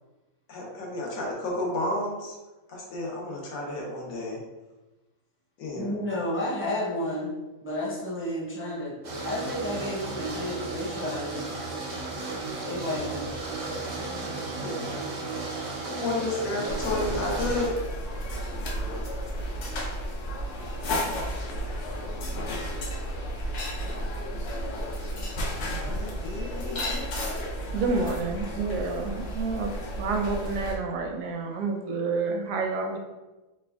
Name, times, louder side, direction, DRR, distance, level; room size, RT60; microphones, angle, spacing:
voice 1, 0.5-2.3 2.7-4.4 5.6-5.9 14.6-14.9 15.9-17.7 21.4-21.5 25.8-27.0, left 2 dB, 85° left, -2 dB, 1.3 m, -31 dB
voice 2, 5.8-7.3 7.6-8.9 9.2-11.4 12.6-13.3, left 1 dB, 15° left, -6 dB, 0.5 m, -31 dB
sound 1, 9.0-17.7, right 3 dB, 60° right, 0.3 m, -34 dB
sound 2, 16.7-30.8, equal, 65° left, 0.9 m, -32 dB
voice 3, 27.7-29.7 30.0-33.0, right 4 dB, 80° right, 2 dB, 1.0 m, -29 dB
3.4 x 2.2 x 3.4 m, 1.1 s
omnidirectional pair, 1.4 m